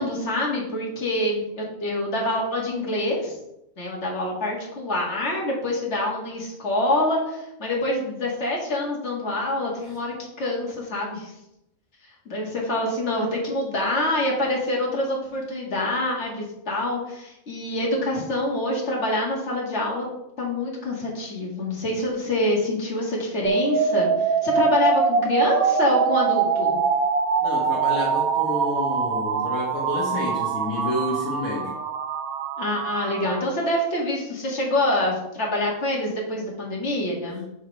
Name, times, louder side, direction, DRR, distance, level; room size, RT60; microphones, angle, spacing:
voice 1, 0.0-3.4 3.8-11.3 12.3-20.1 20.4-26.8 32.6-37.4, left 1 dB, 50° left, -3 dB, 2.1 m, -26 dB
sound 1, 23.4-33.4, right 6 dB, 80° right, 1.2 m, -23 dB
voice 2, 27.4-31.8, left 2 dB, 70° left, -3 dB, 1.7 m, -29 dB
6.3 x 4.8 x 4.6 m, 0.84 s
omnidirectional pair, 1.5 m